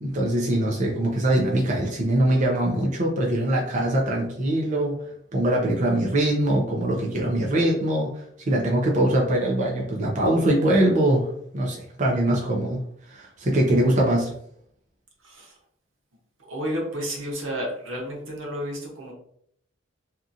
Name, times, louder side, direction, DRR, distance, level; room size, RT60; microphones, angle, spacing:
voice 1, 0.0-5.0 5.3-11.3 11.5-14.3, right 1 dB, 40° right, -1 dB, 0.5 m, -22 dB
voice 2, 16.4-19.1, equal, 85° right, -1 dB, 0.9 m, -31 dB
2.8 x 2.4 x 2.5 m, 0.68 s
head